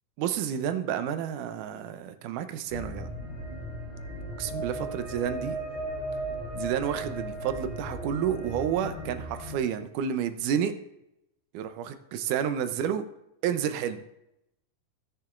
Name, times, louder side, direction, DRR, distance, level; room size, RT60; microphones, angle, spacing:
voice 1, 0.2-3.1 4.4-5.6 6.5-10.7 11.5-13.0 13.4-14.0, right 9 dB, 75° right, 9 dB, 2.0 m, -30 dB
sound 1, 2.7-9.6, right 1 dB, 85° left, 5.3 m, -36 dB
18.0 x 6.7 x 2.4 m, 0.85 s
omnidirectional pair, 3.9 m